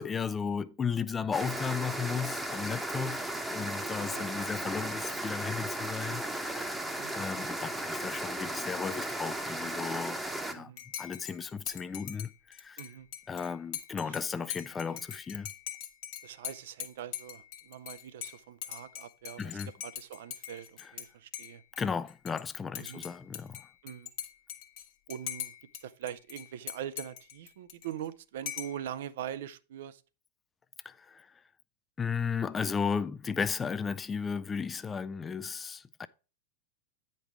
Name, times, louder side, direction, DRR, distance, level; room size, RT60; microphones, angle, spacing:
voice 1, 0.0-3.2 3.5-6.8 7.1-10.2 10.5-10.7 11.0-12.8 13.3-15.5 19.4-19.7 21.8-23.7 30.8-31.3 32.0-36.1, left 6 dB, 15° left, 0.4 m, -35 dB
sound 1, 1.3-10.5, right 1 dB, 5° right, 1.0 m, -35 dB
voice 2, 3.9-4.3 7.0-7.1 10.5-10.8 12.8-13.1 14.1-14.5 14.9-15.0 16.2-21.6 22.8-23.0 23.8-24.1 25.1-30.0, right 10 dB, 55° right, 0.5 m, -43 dB
Dishes pots and pans / Cutlery silverware / Chink clink, 10.8-21.1 21.3-22.4 22.7-25.8 26.1-28.1 28.5-28.8, left 11 dB, 50° left, 1.1 m, -42 dB
8.9 x 5.3 x 4.6 m
figure-of-eight pair, 90°, 0 cm